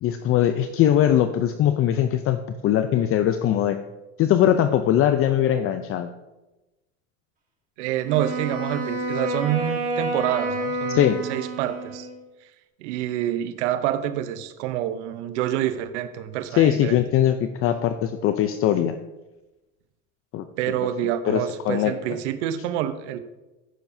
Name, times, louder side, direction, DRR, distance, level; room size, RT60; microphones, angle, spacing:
voice 1, 0.0-3.8 4.2-6.1 10.9-11.2 16.5-19.0 20.3-20.4 21.3-21.9, left 11 dB, 40° left, 9 dB, 0.5 m, -21 dB
voice 2, 7.8-12.1 12.8-17.0 20.6-23.2, right 12 dB, 80° right, 10 dB, 0.9 m, -27 dB
Wind instrument woodwind instrument, 8.0-12.2, right 1 dB, 20° right, 2.1 m, -29 dB
15.0 x 6.8 x 2.7 m, 1.0 s
supercardioid pair, 115°, 34 cm